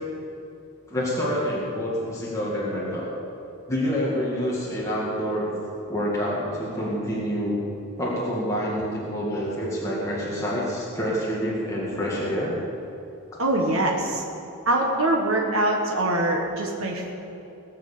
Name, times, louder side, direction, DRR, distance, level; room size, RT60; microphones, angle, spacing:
voice 1, 0.9-3.1 3.7-5.5 5.9-7.6 8.0-12.5, equal, 15° left, -7 dB, 2.1 m, -27 dB
voice 2, 13.4-14.2 14.6-17.1, right 1 dB, 65° right, -1 dB, 1.5 m, -23 dB
19.0 x 6.6 x 6.9 m, 2.8 s
head